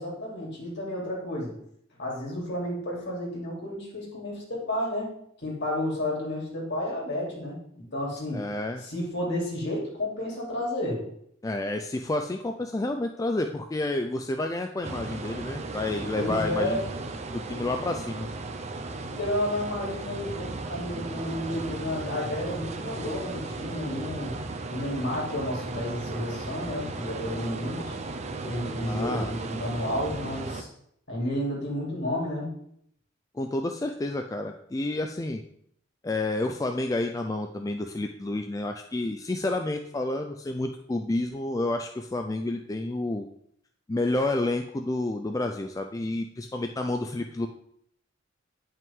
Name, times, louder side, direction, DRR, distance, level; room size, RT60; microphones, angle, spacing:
voice 1, 0.0-1.5 2.0-5.1 5.4-8.4 8.8-11.0 16.1-16.8 19.0-24.3 24.7-28.0 28.4-30.7 31.1-32.5, left 1 dB, 60° left, -4 dB, 2.9 m, -31 dB
voice 2, 8.3-8.8 11.4-16.8 17.3-18.3 28.8-29.3 33.3-35.4 36.0-43.2 43.9-47.5, left 2 dB, 15° left, 5 dB, 0.4 m, -30 dB
sound 1, 14.8-30.6, right 2 dB, 35° right, 0.6 m, -36 dB
9.3 x 5.6 x 3.6 m, 0.70 s
head